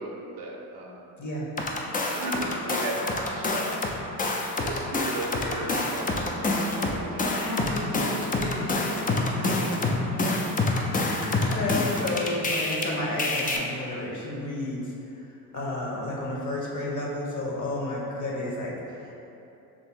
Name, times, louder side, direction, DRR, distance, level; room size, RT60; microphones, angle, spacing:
voice 1, 0.0-1.2 2.0-4.1 4.6-6.1 6.4-7.3 9.4-9.7, right 2 dB, 45° right, -1 dB, 0.7 m, -36 dB
voice 2, 1.2-1.5 5.7-5.8 7.2-9.7 10.8-14.9 15.5-19.1, left 1 dB, 35° left, -3 dB, 1.1 m, -32 dB
sound 1, 1.6-3.9 4.2-12.8 13.2-13.6, left 2 dB, 20° left, 0.4 m, -27 dB
3.2 x 2.7 x 4.5 m, 2.9 s
hypercardioid pair, 55°, 49 cm